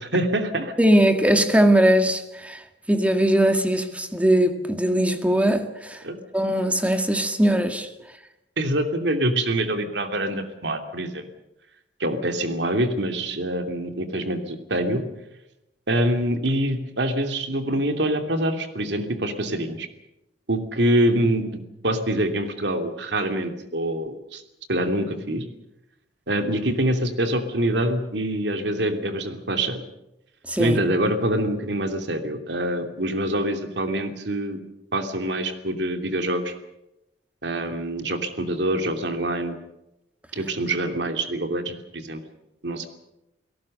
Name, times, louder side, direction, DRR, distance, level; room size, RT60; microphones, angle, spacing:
voice 1, 0.0-0.7 6.0-6.2 8.6-11.3 12.0-15.0 15.9-19.9 20.5-21.5 21.8-24.4 24.7-25.4 26.3-29.8 30.6-34.6 34.9-36.5 37.4-39.6 40.3-42.2 42.6-42.9, right 1 dB, 70° right, 7 dB, 2.9 m, -25 dB
voice 2, 0.8-2.6 2.9-6.0 6.3-7.9 30.5-30.8, right 1 dB, 10° right, 7 dB, 1.9 m, -20 dB
29.5 x 18.0 x 6.7 m, 0.88 s
head